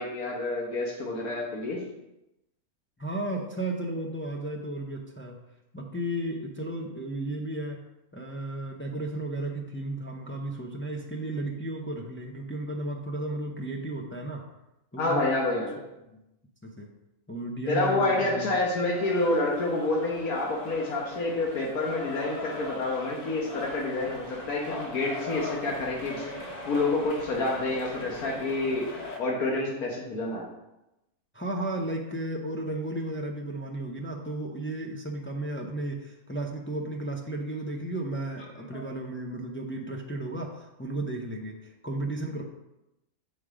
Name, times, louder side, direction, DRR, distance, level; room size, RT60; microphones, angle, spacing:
voice 1, 0.0-1.8 15.0-15.8 17.7-26.3 26.7-30.5 38.7-38.8, left 2 dB, 85° left, -2 dB, 1.7 m, -28 dB
voice 2, 3.0-5.4 5.7-7.8 8.1-14.5 14.9-15.3 16.6-16.9 17.3-18.6 31.3-42.4, right 1 dB, 15° left, 0 dB, 0.5 m, -34 dB
sound 1, 18.9-29.2, left 2 dB, 30° left, 1.0 m, -40 dB
7.3 x 4.9 x 4.9 m, 0.93 s
omnidirectional pair, 1.5 m